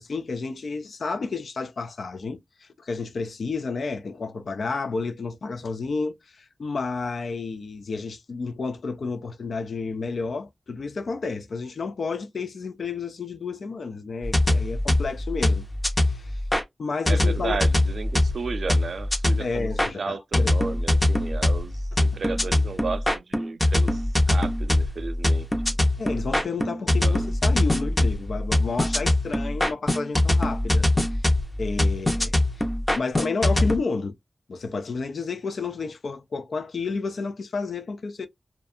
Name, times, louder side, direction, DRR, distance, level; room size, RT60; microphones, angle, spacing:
voice 1, 0.0-15.6 16.0-16.4 16.8-17.6 19.4-20.6 26.0-31.2 31.6-32.3 32.9-34.2 34.5-38.3, left 4 dB, 80° left, 0.3 m, -31 dB
sound 1, 14.2-16.6 17.1-19.9 20.3-33.8, left 1 dB, 20° left, 0.5 m, -23 dB
voice 2, 17.1-19.7 20.0-25.8 27.0-27.3, right 4 dB, 80° right, 0.3 m, -34 dB
2.4 x 2.2 x 2.6 m
wide cardioid pair, 90°, 0 cm